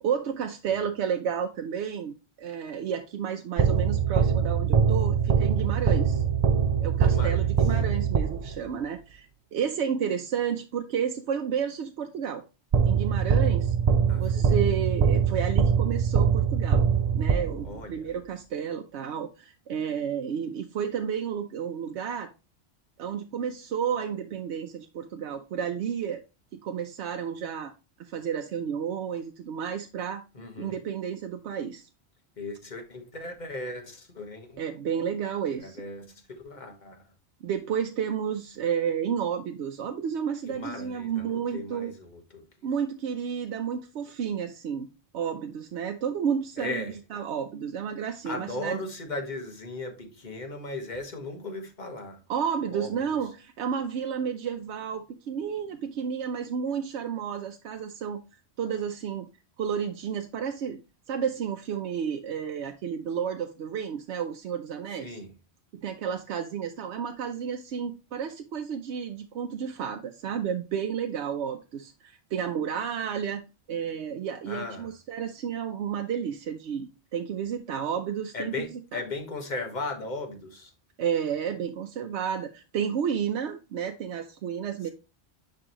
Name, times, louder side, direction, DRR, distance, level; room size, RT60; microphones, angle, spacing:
voice 1, 0.0-6.2 6.8-12.4 12.9-13.7 14.1-16.9 17.1-22.3 23.0-26.2 26.5-27.7 28.1-30.2 30.6-31.9 34.6-35.8 37.4-41.9 42.6-44.9 45.1-48.8 52.3-58.2 58.6-59.3 59.6-60.8 61.1-65.2 65.8-73.4 73.7-78.5 78.9-79.0 81.0-84.9, right 7 dB, 90° right, 0.9 m, -31 dB
sound 1, 3.6-8.7 12.7-17.9, right 7 dB, 50° right, 0.5 m, -23 dB
voice 2, 7.0-7.5 14.1-14.5 17.6-18.1 30.3-30.8 32.4-34.6 35.6-37.0 40.4-42.5 46.6-47.0 48.2-52.2 52.7-52.9 65.0-65.3 74.5-74.9 78.3-80.7 84.8-84.9, left 2 dB, 45° left, 1.4 m, -37 dB
9.8 x 3.4 x 2.9 m
omnidirectional pair, 1.1 m